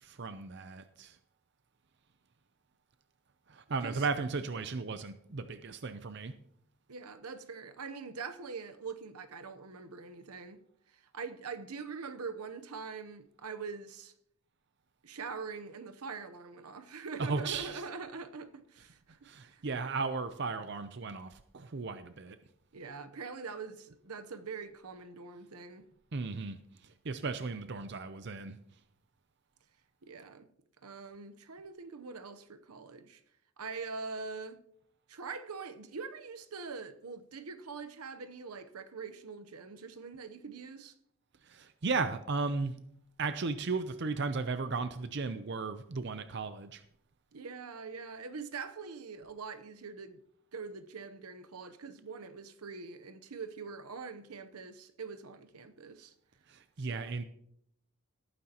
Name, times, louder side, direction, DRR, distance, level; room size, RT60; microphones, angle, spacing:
voice 1, 0.0-1.2 3.5-6.3 17.2-17.8 19.2-22.4 26.1-26.6 27.0-28.6 41.5-42.7 43.2-46.8 56.5-57.2, right 4 dB, 50° right, 0.6 m, -35 dB
voice 2, 6.9-10.6 10.9-14.1 15.0-19.6 22.7-25.9 30.0-30.5 30.8-33.2 33.6-34.6 35.1-40.9 47.3-50.2 50.5-56.1 56.8-57.2, right 5 dB, 90° right, 0.9 m, -43 dB
18.0 x 9.4 x 2.9 m
head